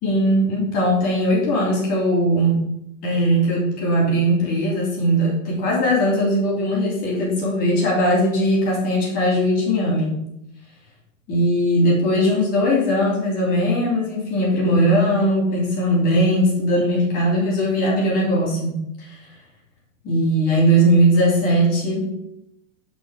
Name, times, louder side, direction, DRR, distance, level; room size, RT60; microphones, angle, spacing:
voice 1, 0.0-2.7 3.0-10.2 11.3-19.2 20.0-22.1, equal, 20° left, -4 dB, 3.1 m, -19 dB
8.1 x 5.3 x 7.3 m, 0.80 s
supercardioid pair, 175°, 40 cm